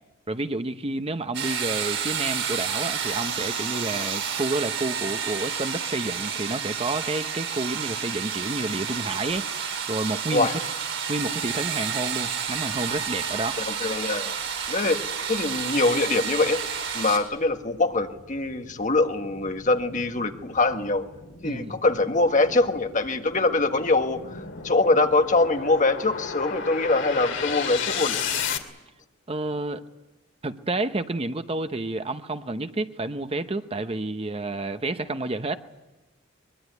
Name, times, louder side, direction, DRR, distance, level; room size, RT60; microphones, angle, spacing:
voice 1, 0.3-10.5 11.1-13.6 21.4-21.8 29.3-29.8 30.4-35.6, right 2 dB, 30° right, 9 dB, 0.9 m, -30 dB
sound 1, 1.3-17.2, right 7 dB, 60° right, 4.8 m, -30 dB
voice 2, 13.8-14.3 14.7-15.0 15.3-16.6 16.9-21.0 21.4-28.3, left 3 dB, 40° left, 6 dB, 1.6 m, -23 dB
sound 2, 14.5-28.6, left 6 dB, 60° left, 2.6 m, -35 dB
23.0 x 22.0 x 9.4 m, 1.1 s
head